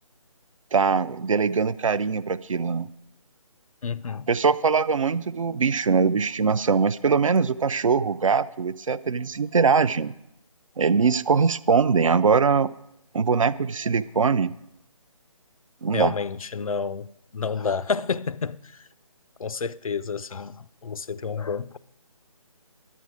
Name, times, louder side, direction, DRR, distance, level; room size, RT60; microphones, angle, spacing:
voice 1, 0.7-2.9 4.3-10.1 10.8-12.7 13.1-14.5 15.8-16.1, right 5 dB, 65° right, 0.4 m, -22 dB
voice 2, 3.8-4.3 15.9-17.1 17.3-18.6 19.4-20.6 20.8-21.8, left 5 dB, 75° left, 0.4 m, -29 dB
11.0 x 8.4 x 4.9 m
figure-of-eight pair, 150°, 18 cm